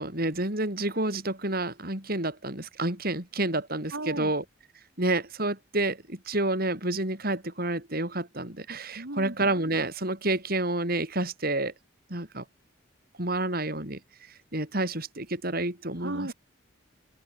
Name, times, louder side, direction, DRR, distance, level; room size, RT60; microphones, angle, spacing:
voice 1, 0.0-4.4 5.0-11.7 12.1-12.4 13.2-14.0 14.5-16.3, right 2 dB, 50° right, 7.0 m, -29 dB
voice 2, 3.9-4.3 8.9-9.3 16.0-16.3, right 2 dB, 70° right, 2.8 m, -35 dB
open air
head